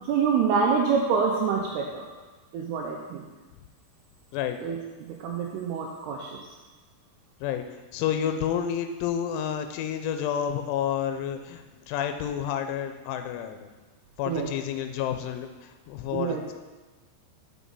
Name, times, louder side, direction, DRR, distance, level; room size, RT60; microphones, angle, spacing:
voice 1, 0.0-2.1 2.5-3.2 4.6-4.8 5.2-6.3 14.3-14.5 16.1-16.4, right 6 dB, 85° right, -1 dB, 2.3 m, -26 dB
voice 2, 7.9-13.7 14.2-16.5, left 9 dB, 85° left, 7 dB, 3.1 m, -30 dB
6.1 x 6.1 x 5.4 m, 1.2 s
omnidirectional pair, 5.4 m